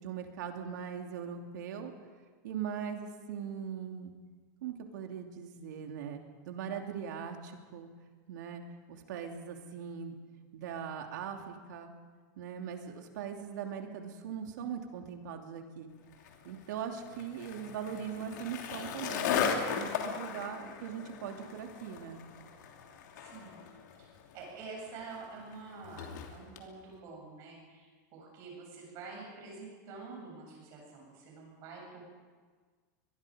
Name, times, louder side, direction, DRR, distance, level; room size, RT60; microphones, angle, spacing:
voice 1, 0.0-1.9 2.4-4.1 4.6-6.2 6.4-7.9 8.3-8.6 8.9-10.1 10.5-11.9 12.4-15.9 16.4-22.2, right 8 dB, 80° right, 3 dB, 3.0 m, -40 dB
Skateboard, 16.1-26.7, left 7 dB, 85° left, 3.0 m, -38 dB
voice 2, 23.2-23.7 24.0-24.1 24.3-32.0, right 4 dB, 35° right, -1 dB, 7.7 m, -47 dB
24.5 x 21.5 x 5.2 m, 1.5 s
supercardioid pair, 180°, 10 cm